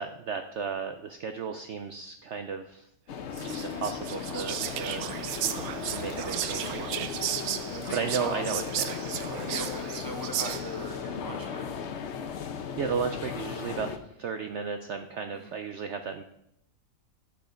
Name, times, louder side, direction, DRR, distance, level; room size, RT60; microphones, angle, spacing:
voice 1, 0.0-2.9 3.4-5.1 5.9-6.9 7.9-9.0 12.8-13.9 14.2-16.2, right 6 dB, 85° right, 7 dB, 0.6 m, -34 dB
sound 1, 3.1-14.0, left 6 dB, 55° left, 0.8 m, -36 dB
Whispering, 3.3-10.9, right 10 dB, 70° right, 1.0 m, -34 dB
voice 2, 4.9-5.2 7.6-8.5 9.5-11.7 15.3-15.5, right 1 dB, 20° left, 2 dB, 0.6 m, -40 dB
9.0 x 5.3 x 5.0 m, 0.75 s
omnidirectional pair, 1.9 m